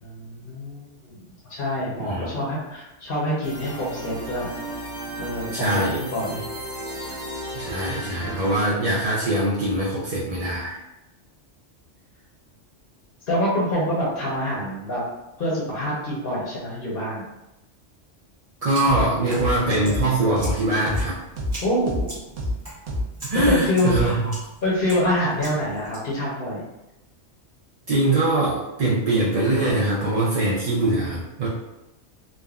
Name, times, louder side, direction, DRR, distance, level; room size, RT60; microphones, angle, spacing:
voice 1, 0.0-1.2 1.5-4.5 5.2-6.4 13.3-15.0 15.4-17.2 21.6-22.1 23.5-24.2 24.6-26.6, left 1 dB, 55° left, -6 dB, 0.8 m, -26 dB
sound 1, 3.4-8.6, equal, 5° right, 0.6 m, -34 dB
voice 2, 5.5-6.0 7.5-10.8 18.6-21.2 23.2-24.3 27.9-31.5, right 2 dB, 55° right, -7 dB, 0.4 m, -22 dB
sound 2, 18.6-26.0, right 1 dB, 35° right, 0.9 m, -42 dB
sound 3, 18.9-19.0 19.4-19.5 19.9-20.0 20.4-20.5 20.9-21.0 21.4-21.5 21.9-22.0 22.4-22.5 22.9-23.0 23.4-23.5 23.9-24.0, left 1 dB, 90° right, 0.9 m, -26 dB
3.4 x 2.1 x 2.3 m, 0.95 s
omnidirectional pair, 1.2 m